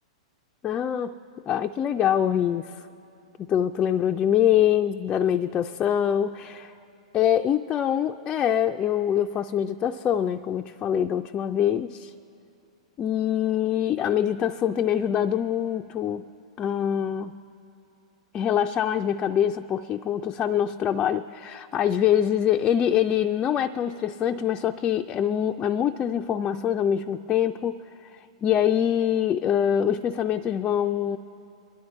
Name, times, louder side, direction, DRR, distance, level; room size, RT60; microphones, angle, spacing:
voice 1, 0.6-1.2 1.5-2.8 3.4-6.7 7.1-12.1 13.0-16.2 16.6-17.4 18.3-27.8 28.4-31.2, left 10 dB, 25° left, 4 dB, 0.4 m, -24 dB
24.0 x 11.0 x 4.2 m, 2.7 s
hypercardioid pair, 110°, 3 cm